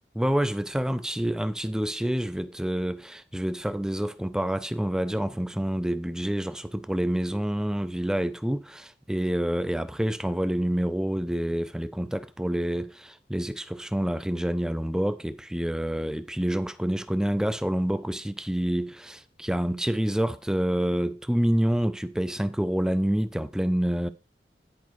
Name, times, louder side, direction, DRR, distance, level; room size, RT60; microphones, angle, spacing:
voice 1, 0.2-24.1, equal, 5° right, 0.4 m, -27 dB
10.5 x 5.3 x 4.6 m
head